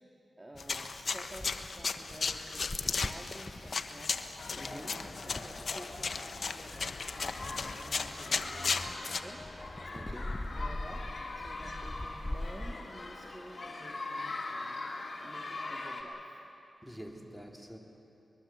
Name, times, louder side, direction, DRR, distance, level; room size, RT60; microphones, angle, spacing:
voice 1, 0.4-4.2 4.6-4.8 5.1-9.4 9.8-10.1 10.5-11.0 11.4-14.9 15.2-16.4, right 1 dB, 25° right, 0 dB, 2.1 m, -51 dB
sound 1, 0.5-12.8, left 1 dB, 25° left, 0.9 m, -43 dB
sound 2, 0.6-9.2, left 4 dB, 65° left, 1.0 m, -35 dB
sound 3, 4.4-16.0, left 2 dB, 50° left, 3.6 m, -42 dB
voice 2, 4.5-5.1 9.9-10.4 16.8-17.8, equal, 5° right, 1 dB, 3.6 m, -46 dB
23.5 x 21.5 x 7.8 m, 2.8 s
cardioid pair, 45°, 0 cm